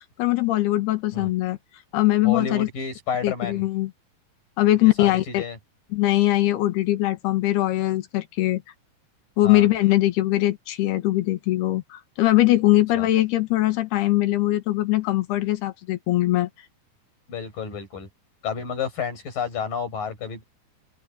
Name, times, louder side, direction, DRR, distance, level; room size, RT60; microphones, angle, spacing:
voice 1, 0.2-1.6 1.9-2.7 3.2-3.9 4.6-5.4 5.9-8.6 9.4-16.5, left 16 dB, 75° left, 3.4 m, -21 dB
voice 2, 2.2-3.7 4.6-5.6 9.4-9.7 13.0-13.1 17.3-18.1 18.4-20.4, left 6 dB, 55° left, 8.4 m, -31 dB
open air
omnidirectional pair, 4.7 m